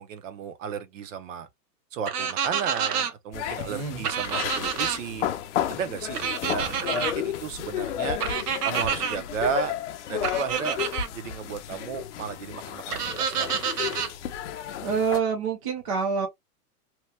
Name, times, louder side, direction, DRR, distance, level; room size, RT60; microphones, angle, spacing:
voice 1, 0.0-1.5 1.9-5.3 5.7-8.2 8.6-9.8 10.1-10.8 11.1-14.0, right 7 dB, 55° right, 0.7 m, -34 dB
sound 1, 2.1-3.1 4.0-5.0 6.1-7.1 8.2-9.2 10.2-11.1 12.9-14.1, right 7 dB, 75° right, 1.0 m, -28 dB
sound 2, 3.3-15.2, left 10 dB, 50° left, 0.6 m, -32 dB
voice 2, 3.6-4.0 14.8-16.3, right 5 dB, 25° right, 0.4 m, -27 dB
2.9 x 2.1 x 3.2 m
supercardioid pair, 160°, 46 cm